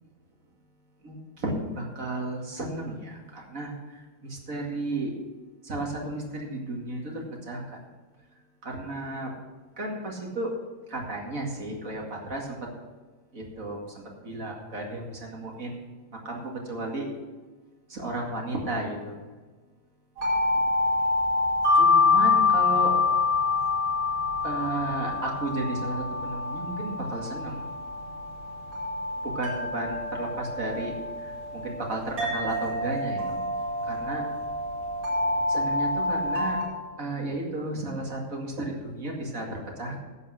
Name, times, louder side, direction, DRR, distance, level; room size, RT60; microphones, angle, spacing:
voice 1, 1.0-5.1 5.6-7.6 8.6-9.3 9.8-10.5 10.9-12.6 13.3-15.8 16.2-17.1 17.9-19.2 21.7-22.9 24.4-27.7 29.2-33.4 33.9-34.2 35.5-36.6 37.0-40.0, right 2 dB, 70° right, 0 dB, 2.6 m, -33 dB
sound 1, 20.2-36.6, left 3 dB, 85° right, 5.2 m, -26 dB
11.0 x 8.4 x 6.4 m, 1.3 s
omnidirectional pair, 1.5 m